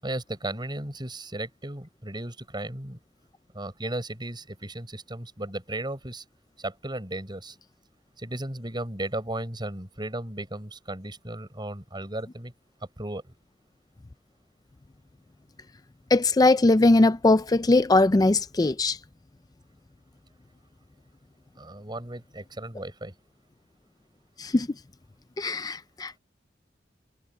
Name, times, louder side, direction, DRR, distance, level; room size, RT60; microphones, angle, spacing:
voice 1, 0.0-3.0 3.5-6.2 6.6-7.5 8.2-12.5 13.0-13.3 21.6-23.1, right 1 dB, 25° right, 6.6 m, -35 dB
voice 2, 16.1-19.0 24.4-24.7 25.4-26.2, left 2 dB, 20° left, 0.4 m, -20 dB
head